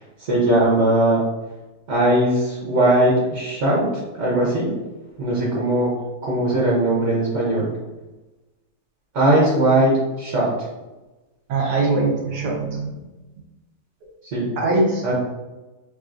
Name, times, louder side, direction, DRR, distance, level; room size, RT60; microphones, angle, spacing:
voice 1, 0.3-1.2 1.9-3.8 4.2-4.7 5.2-5.9 6.2-7.7 9.1-9.9 10.2-10.5 14.3-14.5 15.0-15.1, right 1 dB, 55° right, -5 dB, 1.1 m, -19 dB
voice 2, 11.5-12.9 14.6-15.1, right 2 dB, 80° right, -1 dB, 1.4 m, -21 dB
3.6 x 3.4 x 2.5 m, 1.1 s
omnidirectional pair, 1.7 m